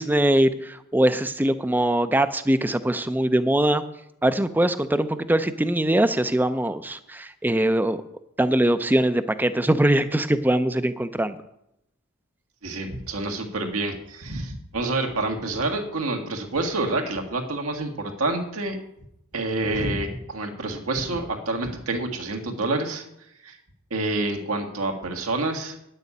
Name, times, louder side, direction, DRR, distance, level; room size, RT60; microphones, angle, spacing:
voice 1, 0.0-3.8 4.2-8.0 8.4-11.4, right 1 dB, 10° right, 12 dB, 0.5 m, -22 dB
voice 2, 12.6-18.8 19.3-23.1 23.4-23.6 23.9-25.8, right 2 dB, 90° right, 3 dB, 1.8 m, -28 dB
10.0 x 6.7 x 8.4 m, 0.81 s
head